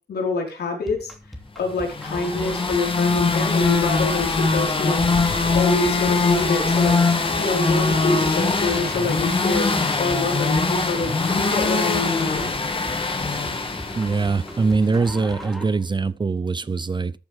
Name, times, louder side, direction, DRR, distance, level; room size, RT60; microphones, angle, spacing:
voice 1, 0.1-1.1 1.5-5.0 5.5-7.0 7.4-12.5, left 3 dB, 75° left, 4.7 m, -25 dB
sound 1, 0.9-15.8, left 1 dB, ahead, 2.7 m, -38 dB
sound 2, 1.9-14.8, left 3 dB, 30° left, 2.1 m, -22 dB
voice 2, 13.9-17.1, right 4 dB, 30° right, 0.6 m, -22 dB
14.0 x 9.2 x 3.6 m
wide cardioid pair, 110°, 17 cm